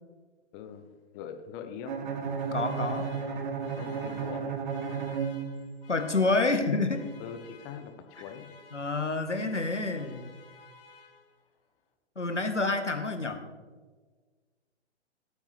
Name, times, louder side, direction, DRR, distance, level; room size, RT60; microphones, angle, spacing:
voice 1, 0.5-2.0 3.8-4.6 7.2-7.9 8.2-8.5, left 7 dB, 20° left, 7 dB, 0.9 m, -42 dB
Bowed string instrument, 1.9-6.0, right 6 dB, 40° right, 1.5 m, -33 dB
Alarm, 2.2-11.6, left 5 dB, 55° left, 2.0 m, -55 dB
voice 2, 2.5-3.1 5.9-7.1 8.7-10.4 12.1-13.4, left 3 dB, 85° left, 7 dB, 1.6 m, -28 dB
18.5 x 8.5 x 3.4 m, 1.4 s
figure-of-eight pair, 120°, 35 cm